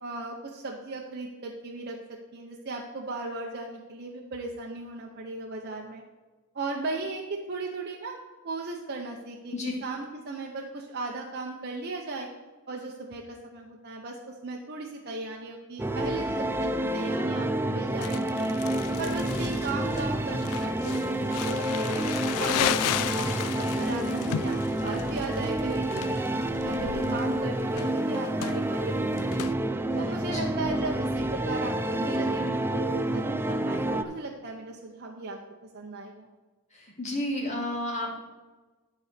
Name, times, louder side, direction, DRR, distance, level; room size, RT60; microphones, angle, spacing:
voice 1, 0.0-2.0 2.3-6.0 6.5-7.2 7.5-8.1 8.4-9.5 9.8-12.3 12.7-18.6 19.0-22.0 22.4-23.3 23.6-24.6 24.8-26.2 26.6-29.4 29.9-35.4 35.7-36.3, right 3 dB, 45° right, 0 dB, 0.8 m, -36 dB
sound 1, 15.8-34.0, right 1 dB, 10° right, 0.3 m, -29 dB
Crumpling crinkling, 18.0-29.5, left 11 dB, 80° left, 0.3 m, -35 dB
voice 2, 29.9-30.7 36.7-38.2, left 1 dB, 30° left, -2 dB, 2.2 m, -33 dB
11.0 x 4.1 x 6.7 m, 1.3 s
head